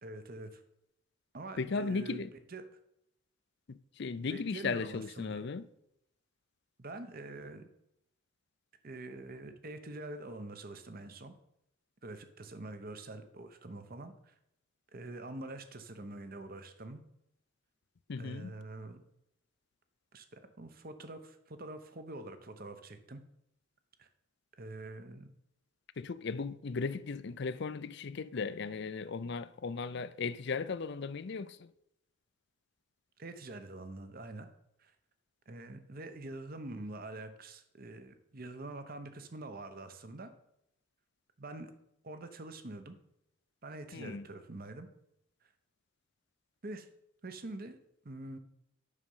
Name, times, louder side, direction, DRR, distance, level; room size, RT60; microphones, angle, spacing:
voice 1, 0.0-0.6 1.3-2.6 4.3-5.5 6.8-7.7 8.8-11.3 12.0-14.3 14.9-17.0 18.2-19.0 20.1-23.2 24.0-24.1 24.6-25.3 33.2-34.5 34.8-34.9 35.5-40.3 41.4-41.7 42.0-43.0 43.6-44.9 45.4-45.5 46.6-46.9 47.2-47.8 48.0-48.4, right 2 dB, 45° right, 0.9 m, -45 dB
voice 2, 1.6-2.3 3.7-5.6 18.1-18.5 26.0-31.7 43.9-44.2, left 4 dB, 55° left, 0.5 m, -36 dB
9.8 x 6.4 x 5.5 m
head